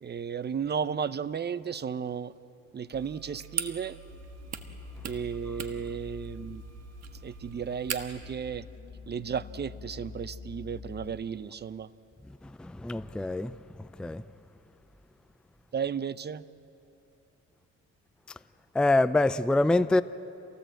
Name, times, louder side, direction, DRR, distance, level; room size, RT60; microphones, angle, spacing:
voice 1, 0.0-2.3 2.7-4.0 5.0-6.6 7.2-8.6 9.1-11.9 15.7-16.4, right 7 dB, 35° right, 0.7 m, -34 dB
sound 1, 2.9-8.3, right 8 dB, 60° right, 1.5 m, -41 dB
sound 2, 4.1-11.2, left 5 dB, 75° left, 1.8 m, -46 dB
voice 2, 12.6-13.6 14.0-14.2 18.7-20.0, left 2 dB, 5° left, 0.4 m, -25 dB
27.0 x 18.5 x 7.8 m
cardioid pair, 90°, 30 cm